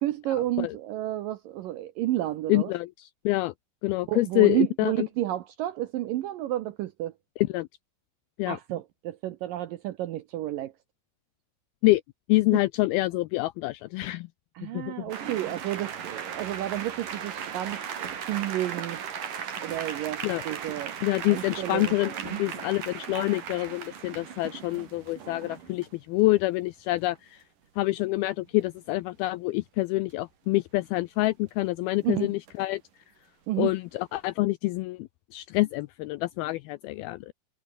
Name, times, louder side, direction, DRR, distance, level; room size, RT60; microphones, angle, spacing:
voice 1, 0.0-2.7 4.1-7.1 8.5-10.7 14.6-17.8 18.3-19.0 19.6-21.0 21.3-22.0 22.3-22.4 32.0-32.3 33.5-33.7, right 14 dB, 75° right, 2.1 m, -31 dB
voice 2, 2.5-3.5 3.8-5.1 7.4-7.7 8.4-8.6 11.8-12.0 12.3-14.3 14.6-15.1 20.2-20.4 21.0-27.4 27.8-32.8 33.6-37.3, left 19 dB, 85° left, 2.2 m, -26 dB
sound 1, 15.1-25.9 27.8-27.9 28.2-28.5 32.5-32.7, right 8 dB, 55° right, 4.1 m, -37 dB
omnidirectional pair, 4.9 m